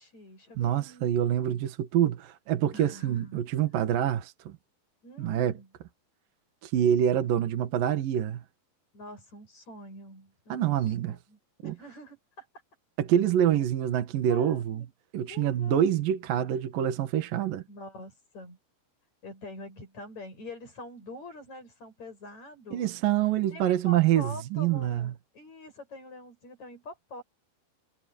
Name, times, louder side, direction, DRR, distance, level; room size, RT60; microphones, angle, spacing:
voice 1, 0.0-1.2 2.7-3.4 5.0-5.7 8.9-12.5 14.3-14.9 15.3-16.0 17.7-18.6 19.2-22.9 23.5-27.2, left 1 dB, 35° left, 9.3 m, -45 dB
voice 2, 0.6-4.6 5.2-5.6 6.6-8.4 10.5-11.2 11.6-11.7 13.0-14.8 15.1-17.6 22.7-25.1, right 10 dB, 60° right, 2.8 m, -26 dB
omnidirectional pair, 5.4 m